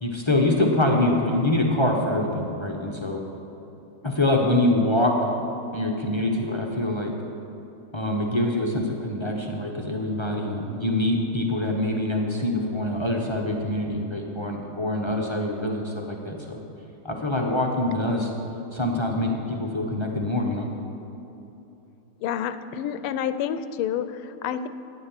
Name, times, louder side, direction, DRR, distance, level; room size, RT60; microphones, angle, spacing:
voice 1, 0.0-3.2 4.0-5.2 5.7-7.1 7.9-16.6 17.0-18.3 18.7-20.7, left 1 dB, 40° left, 0 dB, 0.4 m, -25 dB
voice 2, 22.2-24.7, left 9 dB, 80° left, 12 dB, 1.5 m, -29 dB
12.0 x 10.0 x 7.3 m, 2.9 s
omnidirectional pair, 2.4 m